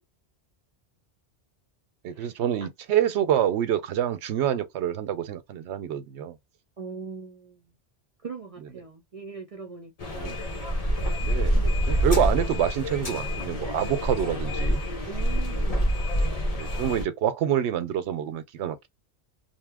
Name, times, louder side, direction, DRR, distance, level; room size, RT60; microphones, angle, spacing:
voice 1, 2.0-6.4 10.2-10.4 11.2-14.8 16.5-18.9, right 10 dB, 85° right, 0.9 m, -27 dB
voice 2, 6.8-7.7 8.2-10.2 15.1-15.9, right 5 dB, 45° right, 0.5 m, -40 dB
sound 1, 10.0-17.0, equal, 40° left, 0.9 m, -26 dB
2.9 x 2.0 x 3.4 m
omnidirectional pair, 1.1 m